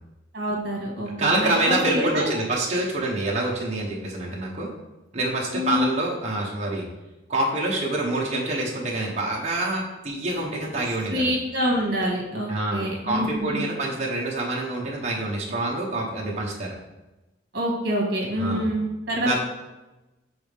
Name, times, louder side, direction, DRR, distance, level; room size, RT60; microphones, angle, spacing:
voice 1, 0.3-2.4 5.5-5.9 11.1-13.6 17.5-19.4, equal, 55° right, -1 dB, 1.5 m, -26 dB
voice 2, 1.2-4.7 5.1-6.8 7.3-11.3 12.5-16.7 18.4-18.7 19.2-19.4, right 2 dB, 35° right, -3 dB, 0.9 m, -26 dB
6.9 x 4.0 x 3.4 m, 1.0 s
head